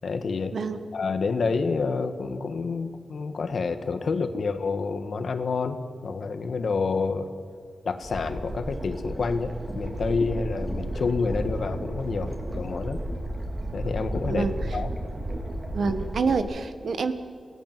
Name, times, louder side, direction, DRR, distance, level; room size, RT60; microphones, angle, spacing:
voice 1, 0.0-0.5 0.9-7.3 7.8-13.0 13.7-14.9 15.8-15.9, left 4 dB, 70° left, 9 dB, 1.6 m, -28 dB
sound 1, 8.0-16.4, right 1 dB, 30° right, 3.6 m, -33 dB
voice 2, 15.7-17.1, right 4 dB, 80° right, 9 dB, 1.5 m, -27 dB
28.0 x 17.5 x 7.6 m, 2.1 s
wide cardioid pair, 100°, 0 cm